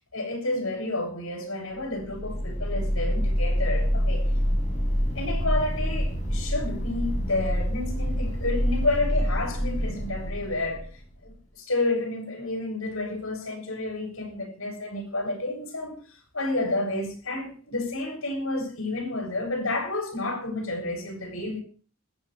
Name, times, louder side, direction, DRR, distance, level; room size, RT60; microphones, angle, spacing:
voice 1, 0.0-4.3 5.2-10.9 11.2-21.6, left 2 dB, 85° left, 7.0 m, -30 dB
sound 1, 1.9-11.2, equal, 35° left, 7.8 m, -27 dB
21.5 x 15.0 x 3.3 m
head